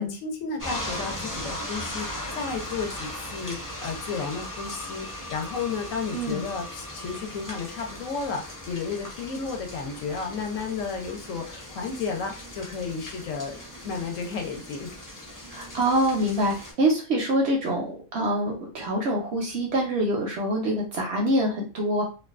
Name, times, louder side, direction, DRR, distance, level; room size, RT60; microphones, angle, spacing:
voice 1, 0.0-2.1 2.3-15.0, left 5 dB, 70° left, 3 dB, 0.9 m, -33 dB
sound 1, 0.6-16.7, left 1 dB, 20° left, 0.6 m, -38 dB
voice 2, 15.5-22.0, right 1 dB, 65° right, 0 dB, 0.7 m, -25 dB
2.5 x 2.2 x 2.4 m, 0.34 s
omnidirectional pair, 1.5 m